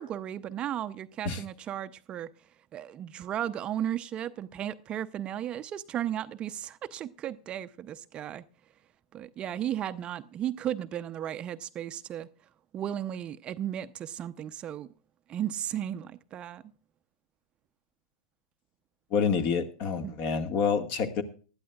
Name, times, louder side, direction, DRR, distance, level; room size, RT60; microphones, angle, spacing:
voice 1, 0.0-2.3 2.7-8.4 9.1-12.3 12.7-14.9 15.3-16.6 20.0-20.2, right 11 dB, 30° right, 0.6 m, -35 dB
voice 2, 19.1-21.2, left 6 dB, 45° left, 1.8 m, -27 dB
19.5 x 12.5 x 2.4 m
hypercardioid pair, 100°, 3 cm